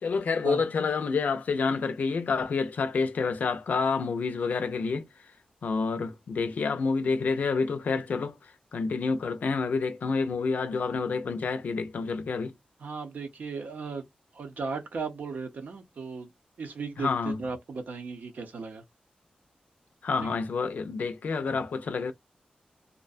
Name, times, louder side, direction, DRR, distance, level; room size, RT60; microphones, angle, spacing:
voice 1, 0.0-5.1 5.6-12.5 17.0-17.4 20.0-22.1, left 4 dB, 80° left, 0.4 m, -28 dB
voice 2, 12.8-14.0 14.3-16.3 16.6-18.8 20.2-20.4, right 4 dB, 80° right, 0.7 m, -36 dB
2.5 x 2.2 x 2.4 m
wide cardioid pair, 80°, 3 cm